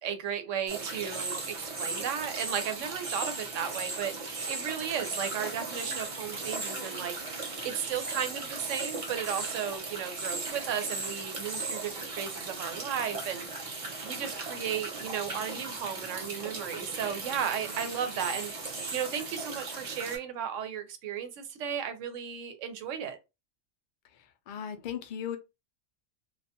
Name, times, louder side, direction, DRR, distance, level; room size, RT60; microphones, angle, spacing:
voice 1, 0.0-23.2, right 8 dB, 85° right, 0.9 m, -35 dB
sound 1, 0.7-20.2, right 3 dB, 35° right, 0.6 m, -37 dB
voice 2, 24.5-25.4, left 9 dB, 60° left, 0.5 m, -36 dB
2.4 x 2.2 x 2.7 m
omnidirectional pair, 1.2 m